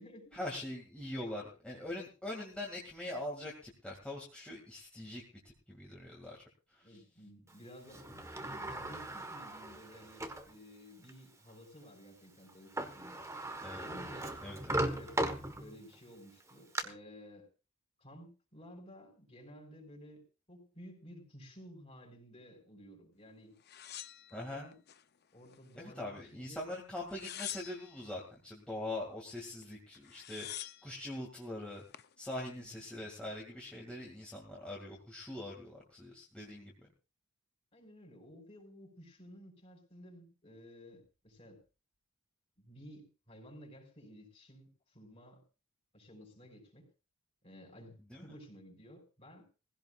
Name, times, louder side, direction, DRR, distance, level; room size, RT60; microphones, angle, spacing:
voice 1, 0.3-5.2 5.7-6.4 6.7-7.0 13.6-13.9 14.4-14.8 24.3-24.7 25.8-31.8 32.2-36.9 48.1-48.3, left 1 dB, 5° left, -3 dB, 2.3 m, -43 dB
voice 2, 6.8-13.2 13.7-14.3 14.6-15.1 15.5-17.5 18.0-20.2 20.5-23.5 24.3-24.8 25.3-26.7 32.6-32.8 37.7-41.6 42.6-45.4 45.9-46.9 47.4-49.4, equal, 30° left, 2 dB, 5.0 m, -54 dB
Sliding door, 7.9-10.5 11.1-11.2 12.5-12.6 12.8-15.9 16.4-16.8, right 1 dB, 15° right, 1.4 m, -38 dB
sound 1, 23.7-25.0 25.5-26.2 27.0-28.1 29.6-29.7 29.9-30.9 31.6-32.1, left 12 dB, 50° left, 0.7 m, -46 dB
19.5 x 16.0 x 2.5 m, 0.32 s
head